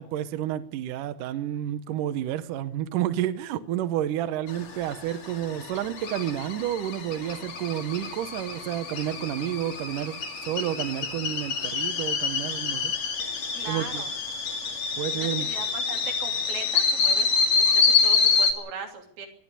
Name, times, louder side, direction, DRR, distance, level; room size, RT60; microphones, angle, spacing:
voice 1, 0.0-12.9 13.6-14.0 15.0-15.5, right 11 dB, 80° right, 1.9 m, -30 dB
sound 1, 4.5-18.5, left 5 dB, 45° left, 3.0 m, -27 dB
voice 2, 13.5-14.1 15.1-17.3 17.6-19.3, right 5 dB, 60° right, 4.8 m, -39 dB
23.5 x 12.0 x 9.8 m
omnidirectional pair, 5.1 m